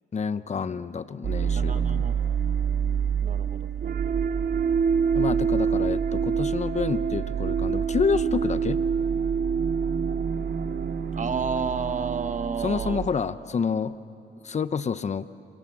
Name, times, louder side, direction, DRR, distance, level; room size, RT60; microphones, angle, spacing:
voice 1, 0.1-2.1 5.1-8.8 12.6-14.0 14.4-15.3, left 6 dB, 35° left, 14 dB, 0.9 m, -28 dB
sound 1, 1.2-13.1, right 6 dB, 60° right, 2.3 m, -26 dB
voice 2, 1.6-2.1 3.2-4.2 11.1-13.0, right 5 dB, 40° right, 9 dB, 1.5 m, -31 dB
29.5 x 27.0 x 7.3 m, 2.6 s
cardioid pair, 90°, 20 cm